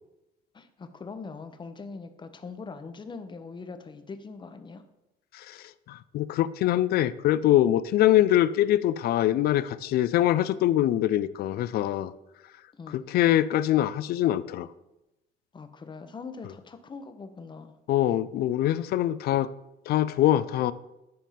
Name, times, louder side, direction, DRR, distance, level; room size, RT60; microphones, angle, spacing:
voice 1, 0.5-4.8 12.7-13.0 15.5-17.8, left 4 dB, 25° left, 9 dB, 0.8 m, -42 dB
voice 2, 5.9-12.1 12.9-14.7 17.9-19.5 19.9-20.7, left 13 dB, 65° left, 16 dB, 0.4 m, -23 dB
10.0 x 3.6 x 5.7 m, 0.92 s
cardioid pair, 110°, 17 cm